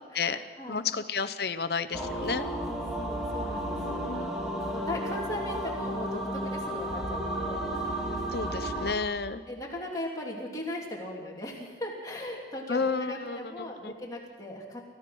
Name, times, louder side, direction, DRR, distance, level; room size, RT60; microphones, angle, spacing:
voice 1, 0.1-0.9 2.7-8.0 8.6-8.9 9.5-14.8, left 1 dB, 20° left, -3 dB, 3.2 m, -39 dB
voice 2, 0.7-2.5 4.0-4.3 8.3-9.4 12.7-13.9, left 5 dB, 60° left, 11 dB, 0.7 m, -31 dB
sound 1, 1.9-8.9, right 1 dB, ahead, 2.2 m, -33 dB
27.5 x 15.5 x 6.2 m, 1.5 s
head